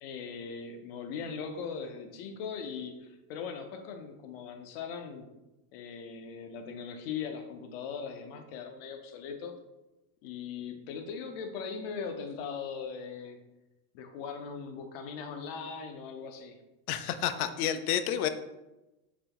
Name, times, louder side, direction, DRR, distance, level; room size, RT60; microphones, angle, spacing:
voice 1, 0.0-5.3 5.7-9.5 10.2-13.4 13.9-16.6, left 6 dB, 45° left, 6 dB, 0.5 m, -40 dB
voice 2, 16.9-18.3, left 10 dB, 90° left, 10 dB, 0.5 m, -30 dB
4.0 x 3.0 x 2.9 m, 1.0 s
supercardioid pair, 165°, 43 cm